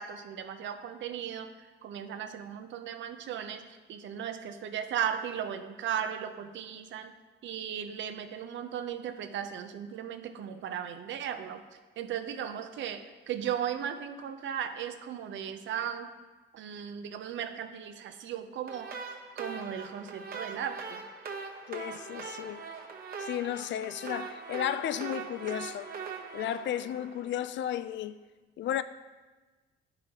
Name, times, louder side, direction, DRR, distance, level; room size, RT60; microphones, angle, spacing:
voice 1, 0.0-7.1 7.4-11.6 12.0-16.1 16.5-18.9 19.4-21.0, right 9 dB, 70° right, 0.6 m, -36 dB
sound 1, 18.7-27.8, right 5 dB, 50° right, 1.0 m, -41 dB
voice 2, 21.7-22.6 23.2-25.9 26.3-28.2 28.6-28.8, left 11 dB, 65° left, 0.4 m, -33 dB
10.0 x 5.0 x 2.9 m
cardioid pair, 90°, 20 cm